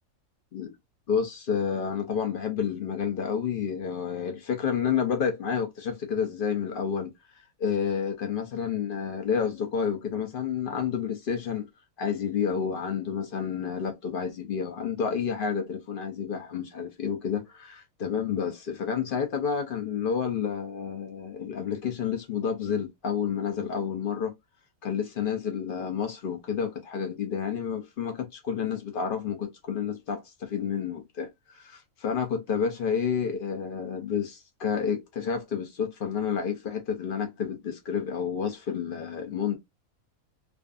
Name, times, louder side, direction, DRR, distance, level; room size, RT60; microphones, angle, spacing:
voice 1, 1.1-7.1 7.6-11.7 12.0-24.3 24.8-39.6, left 7 dB, 70° left, 0.5 m, -30 dB
2.5 x 2.4 x 2.3 m
omnidirectional pair, 1.5 m